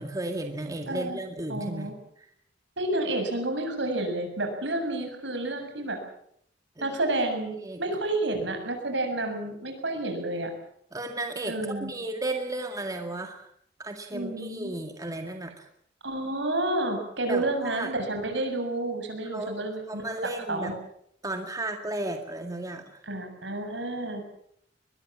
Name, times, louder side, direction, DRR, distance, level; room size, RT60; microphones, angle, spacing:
voice 1, 0.0-1.9 6.8-7.0 7.6-7.8 10.9-13.5 13.8-15.6 17.3-17.9 19.3-20.7 21.2-23.0, right 2 dB, 20° right, 4 dB, 2.1 m, -34 dB
voice 2, 0.9-1.2 1.5-1.9 2.8-6.0 6.8-10.5 11.5-11.9 14.1-14.8 16.0-20.7 23.0-24.2, right 2 dB, 75° right, 5 dB, 7.3 m, -30 dB
22.0 x 22.0 x 7.5 m, 0.69 s
head